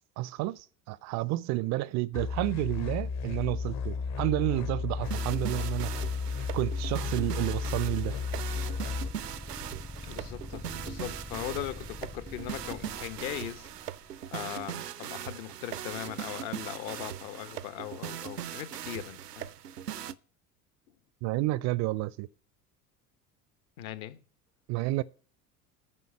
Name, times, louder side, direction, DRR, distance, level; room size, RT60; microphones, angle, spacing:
voice 1, 0.2-5.9 6.5-8.1 21.2-22.3 24.7-25.0, right 18 dB, 40° right, 0.4 m, -30 dB
sound 1, 2.1-9.1, left 5 dB, 35° left, 0.8 m, -33 dB
sound 2, 5.0-20.1, right 10 dB, 90° right, 0.6 m, -40 dB
sound 3, 8.0-14.2, left 2 dB, 10° left, 0.5 m, -45 dB
voice 2, 10.0-13.7 14.3-19.5 23.8-24.2, left 12 dB, 60° left, 1.3 m, -39 dB
9.8 x 5.4 x 8.3 m
figure-of-eight pair, 70°, 46 cm